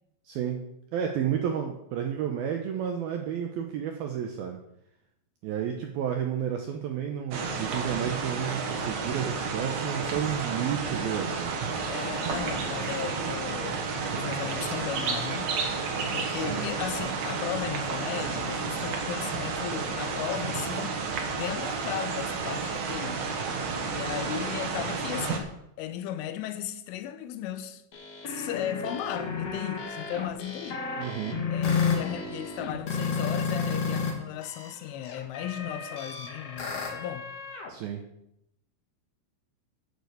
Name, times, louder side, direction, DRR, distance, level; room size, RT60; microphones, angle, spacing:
voice 1, 0.3-0.6 0.9-4.6 5.4-11.6 31.0-31.4 37.7-38.0, right 9 dB, 80° right, 2.2 m, -31 dB
sound 1, 7.3-25.4, right 4 dB, 65° right, 1.8 m, -31 dB
voice 2, 11.9-13.8 14.1-15.5 16.1-21.0 21.4-23.3 23.9-25.5 25.8-27.8 28.3-30.8 31.5-37.3, left 10 dB, 90° left, 3.3 m, -36 dB
sound 2, 27.9-34.1 34.4-37.7, left 5 dB, 55° left, 1.8 m, -32 dB
9.6 x 6.7 x 8.0 m
omnidirectional pair, 5.5 m